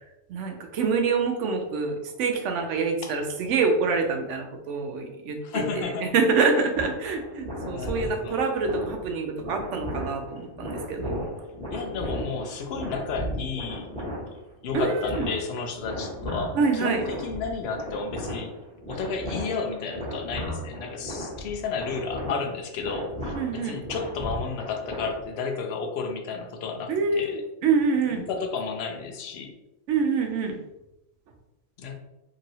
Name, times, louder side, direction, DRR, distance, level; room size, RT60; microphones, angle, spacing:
voice 1, 0.3-11.2 14.7-15.3 16.5-17.0 23.3-23.8 26.9-28.2 29.9-30.6, right 4 dB, 80° right, 4 dB, 0.9 m, -26 dB
voice 2, 5.4-6.1 7.7-8.4 11.7-13.9 14.6-18.5 18.9-27.4 28.1-29.5 31.8-31.9, left 5 dB, 65° left, 4 dB, 0.7 m, -32 dB
sound 1, 6.7-25.5, equal, 5° left, 1.0 m, -35 dB
3.0 x 2.7 x 2.7 m, 0.92 s
omnidirectional pair, 1.3 m